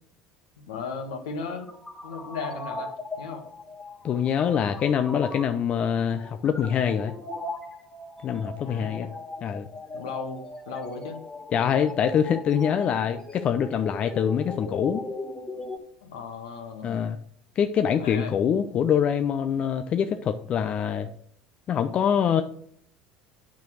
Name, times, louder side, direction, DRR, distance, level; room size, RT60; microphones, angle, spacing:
voice 1, 0.7-1.7 2.0-2.9 3.2-3.4 8.4-9.1 9.9-11.2 16.0-17.0 17.9-18.4, left 5 dB, 75° left, 5 dB, 1.6 m, -36 dB
sound 1, 1.3-15.8, left 2 dB, 25° left, 2.4 m, -39 dB
voice 2, 4.0-7.1 8.2-9.1 9.4-9.7 11.5-15.0 16.8-17.2 17.6-21.1 21.7-22.4, left 8 dB, 40° left, 9 dB, 0.6 m, -24 dB
9.2 x 5.1 x 6.1 m, 0.66 s
hypercardioid pair, 70°, 3 cm